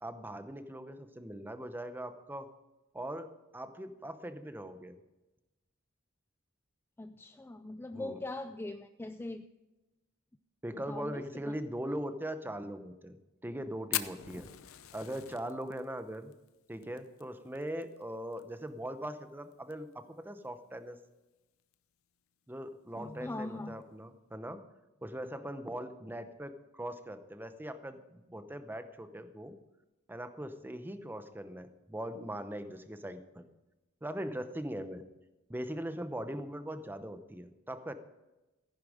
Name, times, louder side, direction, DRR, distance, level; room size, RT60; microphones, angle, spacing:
voice 1, 0.0-2.5 2.9-5.0 7.9-8.2 10.6-13.2 13.4-14.5 14.9-16.3 16.7-21.0 22.5-24.6 25.0-29.6 30.1-33.5 34.0-35.0 35.5-37.9, right 1 dB, 10° right, 10 dB, 0.8 m, -40 dB
voice 2, 7.0-9.4 10.9-11.6 23.0-23.8, left 2 dB, 10° left, 9 dB, 0.3 m, -41 dB
Fire, 13.9-18.4 18.7-18.8 19.0-19.1 19.5-19.9 20.4-20.5 21.6-21.7, left 13 dB, 75° left, 0.7 m, -40 dB
14.5 x 10.5 x 5.0 m, 1.0 s
head